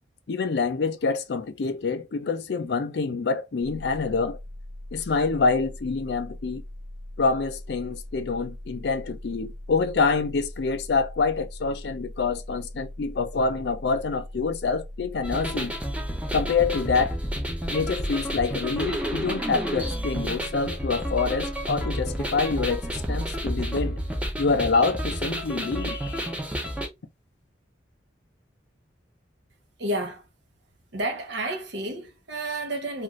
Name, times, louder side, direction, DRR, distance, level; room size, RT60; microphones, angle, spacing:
voice 1, 0.3-4.4 4.9-6.6 7.2-15.7 16.3-17.2 17.7-24.0 24.4-26.4, left 4 dB, 60° left, 0.4 m, -26 dB
sound 1, 3.6-23.6, left 1 dB, 90° left, 0.8 m, -41 dB
sound 2, 15.2-26.9, equal, 5° right, 0.5 m, -30 dB
voice 2, 29.8-30.2 30.9-33.0, right 1 dB, 65° right, 0.8 m, -30 dB
2.4 x 2.4 x 3.0 m
head